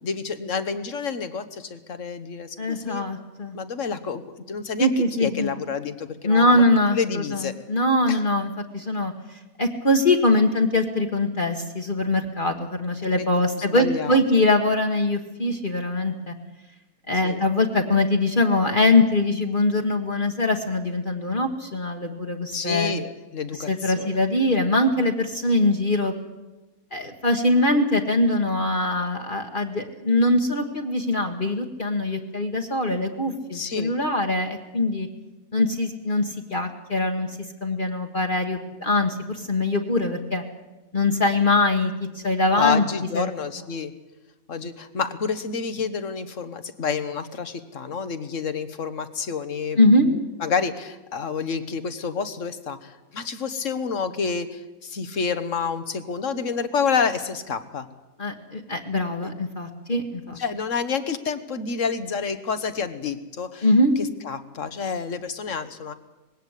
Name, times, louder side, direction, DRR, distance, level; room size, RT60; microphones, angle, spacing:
voice 1, 0.0-3.0 3.5-4.2 4.5-6.6 6.9-7.5 8.1-8.2 13.1-13.2 13.5-14.2 17.2-17.4 22.5-24.2 33.5-33.9 42.6-43.9 44.5-57.9 59.2-59.3 60.4-63.7 64.0-65.9, left 5 dB, 65° left, 11 dB, 1.6 m, -29 dB
voice 2, 2.6-3.6 4.8-5.6 6.2-16.3 17.1-22.9 23.7-26.1 26.9-35.1 35.5-37.3 37.6-40.4 40.9-42.8 43.1-43.3 49.8-50.1 58.2-60.4 63.6-63.9, left 2 dB, 40° left, 3 dB, 1.6 m, -22 dB
20.5 x 17.0 x 8.2 m, 1.1 s
omnidirectional pair, 1.5 m